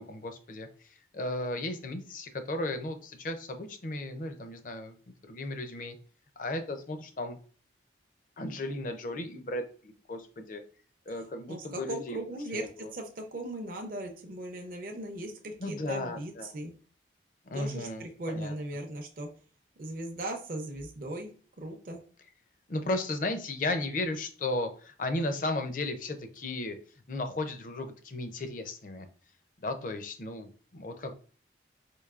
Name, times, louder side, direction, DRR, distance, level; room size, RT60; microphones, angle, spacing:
voice 1, 0.0-5.0 5.2-6.0 6.4-7.4 8.4-10.6 11.1-12.2 12.5-12.9 15.6-16.5 17.5-18.5 22.7-26.8 27.1-29.1 29.6-31.1, left 2 dB, 45° left, 7 dB, 0.5 m, -35 dB
voice 2, 11.5-16.7 17.5-19.3 19.8-21.3 21.6-22.0, right 1 dB, 50° right, 3 dB, 0.5 m, -38 dB
4.6 x 2.6 x 2.4 m, 0.42 s
head